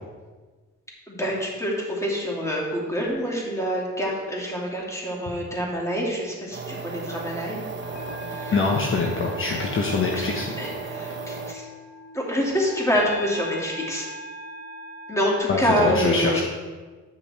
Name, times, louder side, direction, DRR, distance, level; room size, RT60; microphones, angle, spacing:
voice 1, 1.1-7.6 8.3-8.6 10.6-11.7 12.1-14.1 15.1-16.4, equal, 10° left, -3 dB, 2.5 m, -26 dB
sound 1, 6.5-11.5, right 4 dB, 40° right, 0.9 m, -35 dB
sound 2, 7.5-15.4, left 2 dB, 60° left, 1.6 m, -39 dB
voice 2, 8.5-10.5 15.5-16.4, left 4 dB, 40° left, -1 dB, 1.0 m, -24 dB
9.7 x 5.4 x 4.3 m, 1.4 s
cardioid pair, 90°, 30 cm